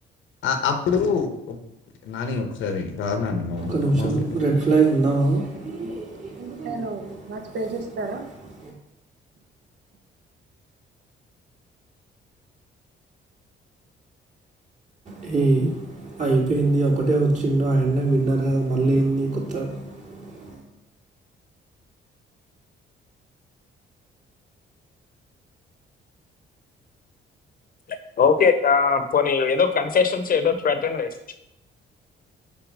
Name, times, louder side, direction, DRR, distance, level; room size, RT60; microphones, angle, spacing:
voice 1, 0.4-1.6 2.1-4.3, left 5 dB, 80° left, 1.0 m, -26 dB
voice 2, 3.6-7.2 8.6-8.7 15.1-20.6, right 2 dB, 40° right, 2.5 m, -23 dB
voice 3, 6.3-8.2, right 3 dB, 60° right, 1.3 m, -32 dB
voice 4, 27.9-31.1, left 5 dB, 45° left, 0.9 m, -20 dB
6.0 x 4.7 x 5.2 m
cardioid pair, 90°, 20 cm